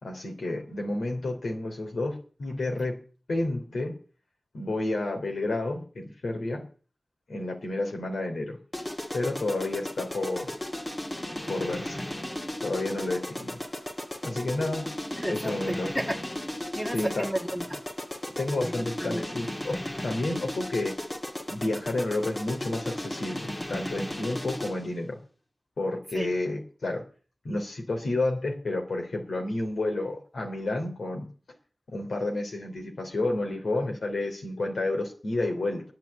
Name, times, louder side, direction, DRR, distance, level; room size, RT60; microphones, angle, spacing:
voice 1, 0.0-3.0 3.3-3.9 4.5-6.6 7.3-8.6 9.1-10.5 11.5-12.0 12.6-13.6 14.2-14.9 15.2-15.9 16.9-17.3 18.4-19.8 20.0-20.9 21.5-25.2 25.8-27.0 27.4-31.2 31.9-35.8, left 2 dB, 85° left, 3.2 m, -30 dB
sound 1, 8.7-24.9, left 1 dB, 25° left, 1.8 m, -35 dB
voice 2, 14.8-16.2 16.7-17.8 18.6-18.7 19.0-19.2 26.1-26.3 27.5-27.6, equal, 5° left, 1.6 m, -32 dB
10.5 x 9.5 x 8.7 m
wide cardioid pair, 75°, 0 cm